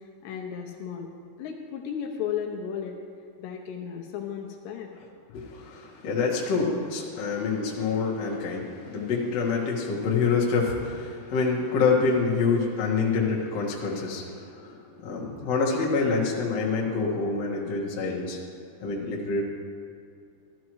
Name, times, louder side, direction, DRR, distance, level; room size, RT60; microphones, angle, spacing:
voice 1, 0.2-1.1 1.4-3.0 3.4-4.9, left 8 dB, 80° left, 1 dB, 2.8 m, -34 dB
voice 2, 5.3-18.4 18.8-19.4, left 4 dB, 50° left, -4 dB, 2.0 m, -26 dB
14.5 x 12.5 x 3.1 m, 2.4 s
omnidirectional pair, 5.1 m